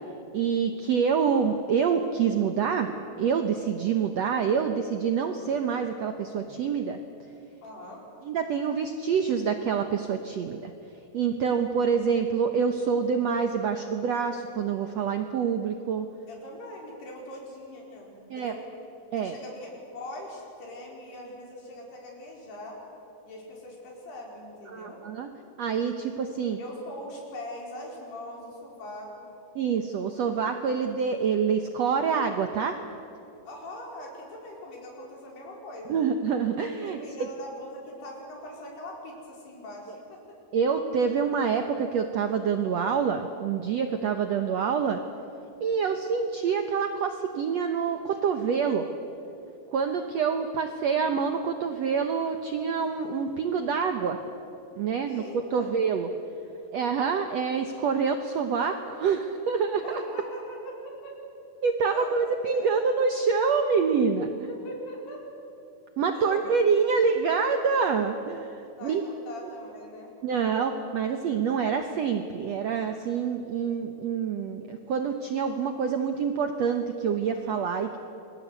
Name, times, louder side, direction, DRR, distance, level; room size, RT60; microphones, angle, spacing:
voice 1, 0.3-2.9 3.2-7.0 8.2-10.7 11.1-16.1 18.3-18.5 19.1-19.3 24.7-25.3 25.6-26.6 29.5-32.8 35.9-37.0 40.5-45.0 45.6-48.9 49.7-54.2 54.8-55.2 55.5-56.1 56.7-60.0 61.6-64.5 66.0-69.0 70.2-78.0, right 6 dB, 75° right, 6 dB, 1.5 m, -26 dB
voice 2, 7.6-8.1 16.3-18.6 19.1-22.8 23.3-25.0 26.6-29.3 33.5-36.0 36.9-40.2 55.0-55.7 59.8-61.1 61.9-62.2 62.5-62.7 64.5-65.2 66.1-66.5 66.9-67.0 68.7-70.1, left 1 dB, 90° left, -1 dB, 6.9 m, -41 dB
27.5 x 21.0 x 8.2 m, 2.8 s
omnidirectional pair, 4.5 m